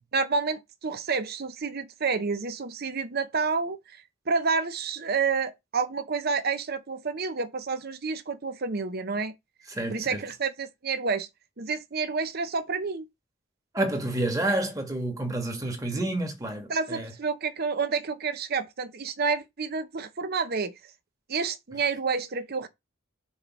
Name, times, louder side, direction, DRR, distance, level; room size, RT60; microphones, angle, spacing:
voice 1, 0.1-4.0 4.3-9.3 9.9-11.3 11.6-13.1 16.7-20.8 21.3-22.7, right 4 dB, 45° right, 0.7 m, -29 dB
voice 2, 9.7-10.2 13.7-17.1, right 1 dB, 15° right, 1.6 m, -29 dB
6.2 x 3.5 x 5.9 m
head